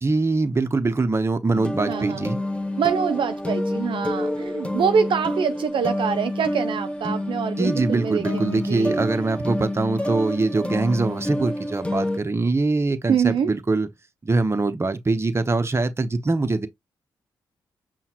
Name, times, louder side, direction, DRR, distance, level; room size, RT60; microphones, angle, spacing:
voice 1, 0.0-2.4 7.6-13.9 14.2-16.7, right 3 dB, 25° right, 0.8 m, -23 dB
sound 1, 1.5-12.2, left 1 dB, 10° left, 1.1 m, -28 dB
voice 2, 1.9-2.3 2.8-9.1 13.1-13.6, right 7 dB, 60° right, 0.4 m, -25 dB
5.6 x 2.3 x 2.9 m
supercardioid pair, 45°, 10 cm